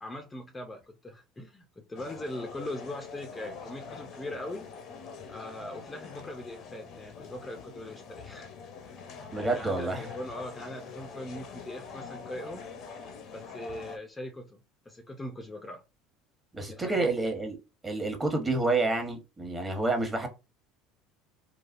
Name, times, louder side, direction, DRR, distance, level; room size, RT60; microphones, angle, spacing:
voice 1, 0.0-4.7 5.3-8.5 9.3-12.7 13.3-14.6 14.9-15.8 16.7-17.3, left 1 dB, 20° left, 0.6 m, -40 dB
sound 1, 1.9-14.0, left 5 dB, 55° left, 0.7 m, -45 dB
voice 2, 9.3-10.1 16.5-17.6 17.8-20.3, right 3 dB, 20° right, 1.2 m, -29 dB
3.9 x 2.2 x 2.5 m
hypercardioid pair, 80°, 0 cm